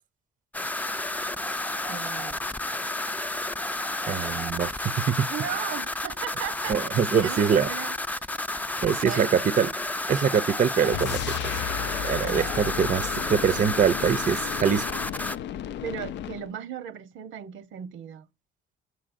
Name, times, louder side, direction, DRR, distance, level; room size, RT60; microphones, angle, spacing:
sound 1, 0.5-15.4, left 2 dB, 10° left, 0.4 m, -31 dB
voice 1, 1.9-2.4 5.3-7.9 9.0-9.3 10.8-11.1 12.2-12.5 15.8-18.3, right 9 dB, 90° right, 0.9 m, -36 dB
voice 2, 4.1-4.7 5.0-5.3 6.7-7.7 8.8-9.7 10.1-11.2 12.0-14.8, right 7 dB, 40° right, 0.5 m, -23 dB
sound 2, 10.9-16.5, left 10 dB, 65° left, 0.4 m, -34 dB
9.4 x 7.5 x 2.5 m
cardioid pair, 90°, 20 cm